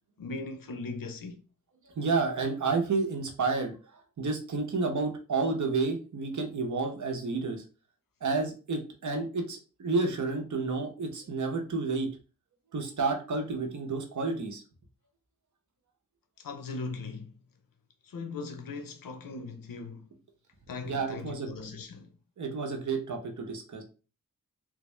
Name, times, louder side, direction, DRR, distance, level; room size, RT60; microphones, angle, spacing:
voice 1, 0.2-1.4 16.4-17.3 18.0-20.0 20.7-22.1, left 3 dB, 80° left, 0.6 m, -39 dB
voice 2, 1.9-7.6 8.2-12.1 12.7-14.6 20.8-21.5 22.4-23.8, right 4 dB, 60° right, 0.9 m, -30 dB
3.4 x 2.5 x 3.1 m
wide cardioid pair, 110°, 33 cm